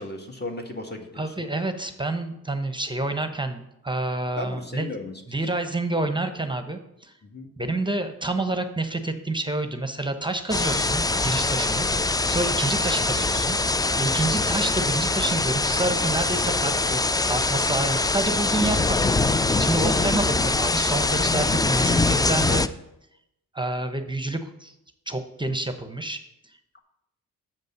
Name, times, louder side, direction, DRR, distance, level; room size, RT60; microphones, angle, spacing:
voice 1, 0.0-1.5 4.4-5.5 7.2-7.5 26.7-26.8, left 2 dB, 30° left, 2 dB, 1.8 m, -36 dB
voice 2, 1.2-4.9 5.3-7.1 7.6-11.9 12.3-13.6 14.0-22.7 23.5-24.7 25.1-26.2, right 2 dB, 15° right, 8 dB, 0.9 m, -28 dB
sound 1, 10.5-22.7, left 3 dB, 10° left, 0.4 m, -23 dB
7.4 x 5.3 x 6.6 m, 0.83 s
supercardioid pair, 50°, 35 cm